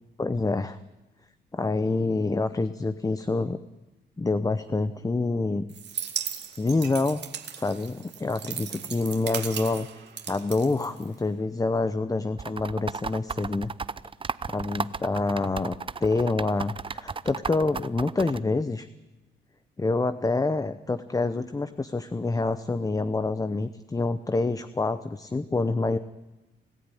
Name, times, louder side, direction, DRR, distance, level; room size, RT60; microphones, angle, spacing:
voice 1, 0.2-0.8 1.5-3.6 4.2-5.7 6.6-7.2 7.5-9.9 10.3-13.7 14.5-15.7 16.0-18.9 19.8-26.0, left 3 dB, 15° left, 12 dB, 0.8 m, -27 dB
sound 1, 5.7-11.4, right 8 dB, 60° right, 2.1 m, -37 dB
sound 2, 12.4-18.4, right 5 dB, 25° right, 0.7 m, -33 dB
26.5 x 14.5 x 9.9 m, 1.0 s
cardioid pair, 90°, 20 cm